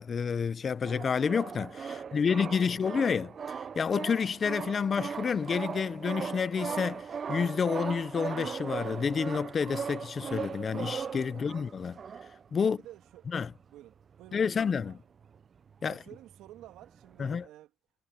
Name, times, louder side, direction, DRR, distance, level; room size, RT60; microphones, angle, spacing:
voice 1, 0.0-12.0 12.5-12.8 13.3-13.5 14.3-14.9 15.8-16.0 17.2-17.4, left 6 dB, 25° left, 0.6 m, -29 dB
sound 1, 0.9-12.6 13.2-13.3 13.4-13.6 14.1-15.4 15.7-17.5, right 6 dB, 30° right, 0.4 m, -38 dB
voice 2, 1.9-3.0 11.3-11.5 12.6-13.3 13.7-15.0 15.8-17.7, right 14 dB, 60° right, 2.0 m, -51 dB
cardioid pair, 130°, 0 cm